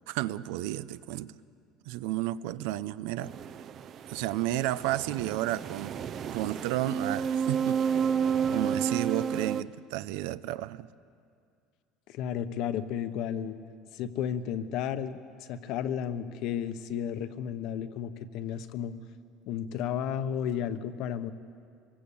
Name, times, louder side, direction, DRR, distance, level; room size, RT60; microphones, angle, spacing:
voice 1, 0.1-1.3 1.9-3.3 4.1-6.0 6.3-7.8 8.5-10.9, right 15 dB, 80° right, 0.7 m, -32 dB
sound 1, 3.2-9.6, right 7 dB, 35° right, 0.6 m, -31 dB
voice 2, 12.1-13.6 13.9-18.9 19.5-21.3, left 9 dB, 55° left, 1.1 m, -33 dB
25.0 x 22.5 x 8.7 m
cardioid pair, 165°, 0 cm